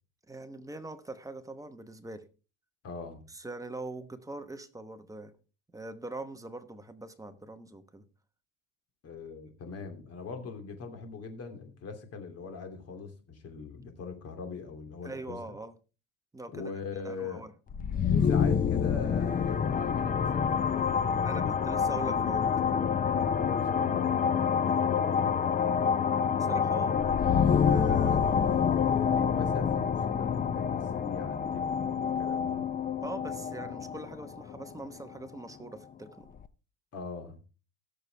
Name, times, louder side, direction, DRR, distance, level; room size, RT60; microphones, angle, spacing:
voice 1, 0.3-2.3 3.3-5.3 5.7-8.0 15.0-15.7 16.3-16.7 17.0-17.5 21.2-22.5 26.4-27.0 27.7-28.2 33.0-36.3, right 2 dB, 10° right, 1.0 m, -42 dB
voice 2, 2.8-3.2 9.0-15.6 16.5-17.4 18.1-21.9 23.2-25.8 28.0-28.2 28.8-32.7 36.9-37.4, left 4 dB, 40° left, 2.8 m, -41 dB
sound 1, 17.7-35.4, left 7 dB, 20° left, 0.7 m, -27 dB
17.5 x 6.8 x 3.4 m
supercardioid pair, 115°, 38 cm